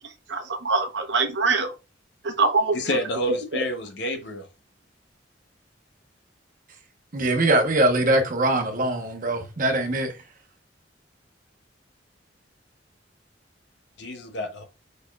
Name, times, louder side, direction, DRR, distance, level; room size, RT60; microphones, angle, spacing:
voice 1, 0.3-1.7 2.2-2.8 3.3-3.6, right 3 dB, 70° right, 0.9 m, -24 dB
voice 2, 2.7-4.5 14.0-14.6, equal, 70° left, 0.9 m, -29 dB
voice 3, 7.1-10.1, right 2 dB, 50° right, 1.0 m, -22 dB
5.1 x 4.2 x 2.3 m
head